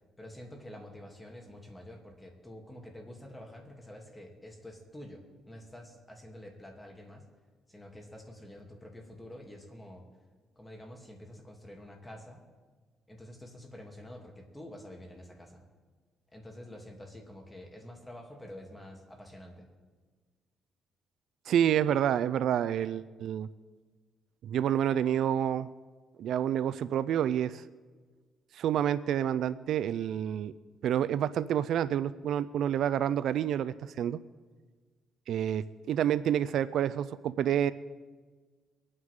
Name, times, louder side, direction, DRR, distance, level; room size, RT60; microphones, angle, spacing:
voice 1, 0.2-7.2 7.7-10.0 10.6-12.4 13.1-15.6 16.3-19.6, left 1 dB, 15° left, 1 dB, 2.9 m, -48 dB
voice 2, 21.5-23.5 24.4-25.7 26.2-27.6 28.5-30.5 30.8-34.2 35.3-37.7, right 10 dB, 75° right, 15 dB, 0.4 m, -28 dB
24.0 x 9.5 x 3.7 m, 1.4 s
cardioid pair, 90°, 0 cm